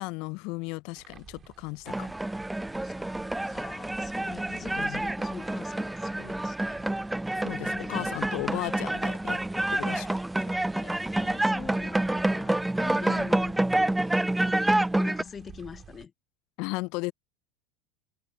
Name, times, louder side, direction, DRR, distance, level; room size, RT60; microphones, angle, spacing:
voice 1, 0.0-2.1 4.7-5.0 7.4-9.4 9.7-10.1 13.1-13.3 16.6-17.1, left 26 dB, 60° left, 0.4 m, -35 dB
sound 1, 1.0-16.1, right 7 dB, 35° right, 4.2 m, -53 dB
sound 2, 1.9-15.2, right 1 dB, 5° right, 0.3 m, -28 dB
voice 2, 2.8-3.2 3.4-6.8 7.6-8.1 10.7-16.1, left 6 dB, 30° left, 0.7 m, -44 dB
hypercardioid pair, 80°, 0 cm